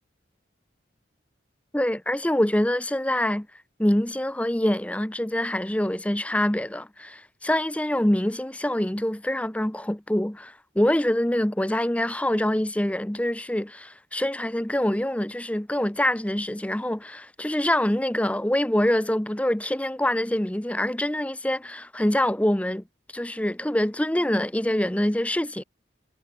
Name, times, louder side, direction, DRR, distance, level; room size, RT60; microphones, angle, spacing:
voice 1, 1.7-3.5 3.8-22.8 23.1-25.6, left 1 dB, 5° left, 0.7 m, -25 dB
head